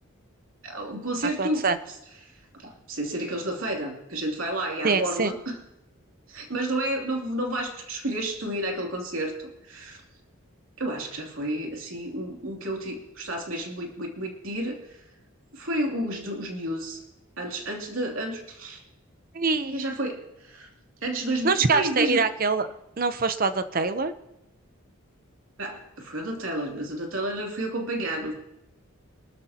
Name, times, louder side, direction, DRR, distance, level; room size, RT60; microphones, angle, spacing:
voice 1, 0.6-1.6 2.6-5.6 6.3-10.0 10.8-14.8 15.5-17.0 17.4-18.8 19.7-20.7 21.0-22.2 25.6-28.3, right 1 dB, 65° right, 1 dB, 2.9 m, -31 dB
voice 2, 1.4-1.8 4.8-5.3 19.3-19.8 21.4-22.7 23.0-24.1, right 4 dB, 40° right, 10 dB, 0.8 m, -24 dB
26.0 x 13.0 x 2.9 m, 0.89 s
head